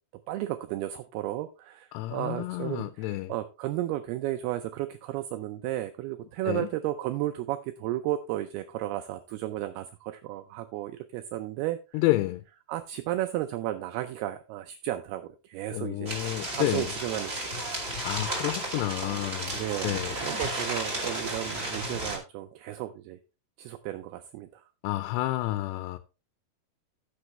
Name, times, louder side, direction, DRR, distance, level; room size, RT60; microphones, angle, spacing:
voice 1, 0.3-12.0 12.7-17.4 17.7-17.8 19.5-23.2 23.6-24.6, right 14 dB, 80° right, 2.3 m, -34 dB
voice 2, 1.9-3.3 6.5-6.7 11.9-12.4 15.7-16.9 18.0-20.2 24.8-26.0, left 17 dB, 85° left, 2.7 m, -30 dB
sound 1, 16.1-22.2, right 1 dB, 20° right, 2.1 m, -33 dB
14.5 x 6.1 x 3.1 m
omnidirectional pair, 5.0 m